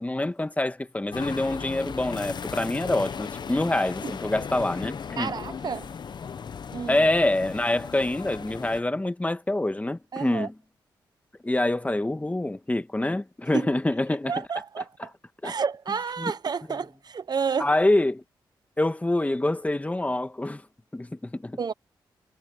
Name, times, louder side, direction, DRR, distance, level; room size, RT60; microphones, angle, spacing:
voice 1, 0.0-5.3 6.9-10.5 11.4-14.4 15.0-15.1 15.4-15.5 16.2-16.3 17.6-18.2 18.8-20.6 20.9-21.6, left 1 dB, 15° left, 1.8 m, -26 dB
sound 1, 1.1-8.8, left 6 dB, 55° left, 1.1 m, -36 dB
voice 2, 5.2-5.9 6.7-7.0 10.1-10.5 13.5-13.7 14.3-15.1 15.4-17.7 21.6-21.7, right 6 dB, 50° right, 1.0 m, -30 dB
cardioid pair, 55°, 9 cm